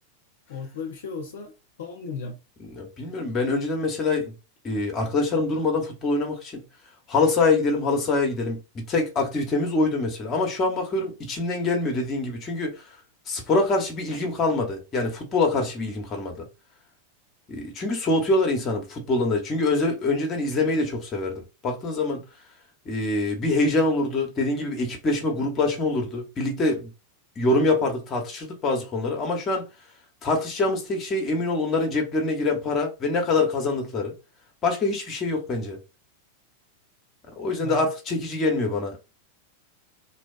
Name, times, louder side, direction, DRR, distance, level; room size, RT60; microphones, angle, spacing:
voice 1, 0.5-1.5 1.8-2.4 37.6-38.2, left 5 dB, 60° left, 0.5 m, -36 dB
voice 2, 2.7-4.3 4.6-6.6 7.1-12.8 13.3-16.5 17.5-22.2 22.8-26.9 27.4-29.7 30.2-34.1 34.6-35.8 37.4-39.0, left 2 dB, 25° left, 0.9 m, -25 dB
2.7 x 2.2 x 2.3 m
figure-of-eight pair, 90°, 0 cm